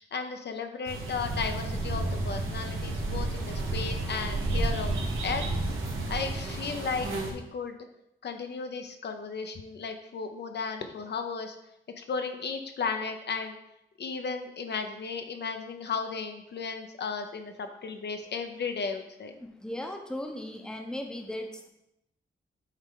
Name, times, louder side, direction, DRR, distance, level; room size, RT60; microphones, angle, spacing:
voice 1, 0.0-5.4 6.1-7.8 8.2-11.6 12.0-13.6 14.0-19.3, left 5 dB, 55° left, 6 dB, 0.6 m, -35 dB
sound 1, 0.9-7.3, right 2 dB, 85° right, 1.2 m, -31 dB
voice 2, 19.4-21.7, left 1 dB, 5° left, 3 dB, 0.7 m, -37 dB
8.1 x 3.2 x 3.7 m, 0.83 s
wide cardioid pair, 115°, 20 cm